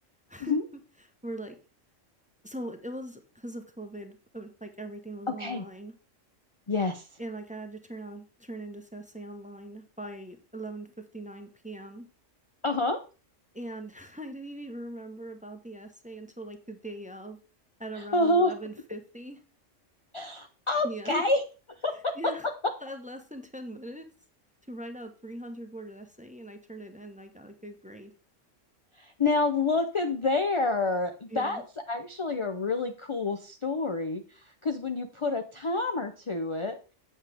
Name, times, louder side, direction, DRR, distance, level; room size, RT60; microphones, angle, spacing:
voice 1, 1.2-1.6 2.4-5.9 7.2-12.1 13.5-17.4 17.8-19.4 20.8-21.2 22.2-22.5 22.8-24.1 24.7-28.1 31.3-31.6, right 1 dB, 5° right, 6 dB, 0.8 m, -41 dB
voice 2, 6.7-7.1 12.6-13.0 17.9-18.5 20.1-21.4 21.8-22.1 29.0-36.8, left 3 dB, 35° left, 7 dB, 0.5 m, -28 dB
8.1 x 7.4 x 3.4 m, 0.33 s
omnidirectional pair, 1.3 m